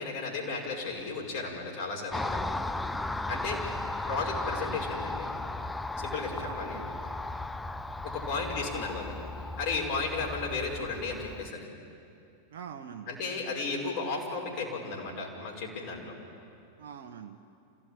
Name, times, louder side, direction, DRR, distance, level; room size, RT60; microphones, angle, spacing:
voice 1, 0.0-2.4 3.3-3.6 4.1-5.4 6.0-6.9 8.0-9.1 9.6-11.7 13.1-16.1, left 4 dB, 50° left, -1 dB, 5.6 m, -34 dB
Car passing by, 2.1-11.5, left 2 dB, 10° left, 0.6 m, -36 dB
voice 2, 4.5-4.8 6.3-6.9 12.5-13.1 16.8-17.4, right 7 dB, 55° right, 4 dB, 1.1 m, -44 dB
27.5 x 17.0 x 8.9 m, 2.5 s
figure-of-eight pair, 90°, 0 cm